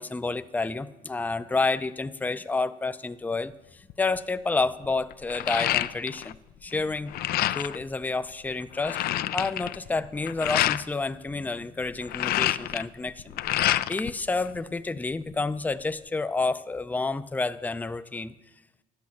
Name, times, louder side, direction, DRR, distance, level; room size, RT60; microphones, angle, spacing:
voice 1, 0.0-6.4 6.6-7.1 7.5-9.0 9.3-13.4 13.9-18.3, left 3 dB, 10° left, 12 dB, 0.5 m, -29 dB
sound 1, 3.9-4.2 4.6-6.4 6.6-7.8 8.3-8.4 8.6-10.8 11.9-14.1 14.5-15.3, left 13 dB, 65° left, 0.4 m, -28 dB
11.5 x 8.5 x 7.0 m, 1.0 s
cardioid pair, 110°, 17 cm